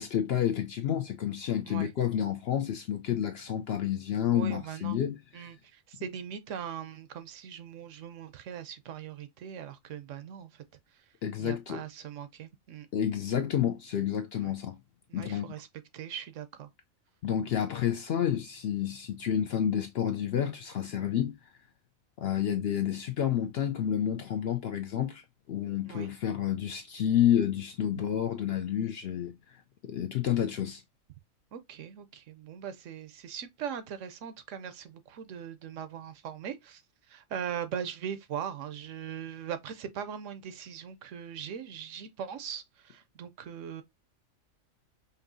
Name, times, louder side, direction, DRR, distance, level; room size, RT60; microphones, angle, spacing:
voice 1, 0.0-5.5 11.2-11.8 12.9-14.8 15.1-15.5 17.2-21.3 22.2-30.8, left 10 dB, 65° left, 0.6 m, -30 dB
voice 2, 4.3-5.0 5.3-10.6 10.9-11.1 11.4-12.9 14.4-14.5 15.1-15.7 15.9-16.7 25.8-26.1 31.5-36.8 37.1-43.8, right 8 dB, 70° right, 0.9 m, -40 dB
5.3 x 2.7 x 2.6 m
omnidirectional pair, 1.4 m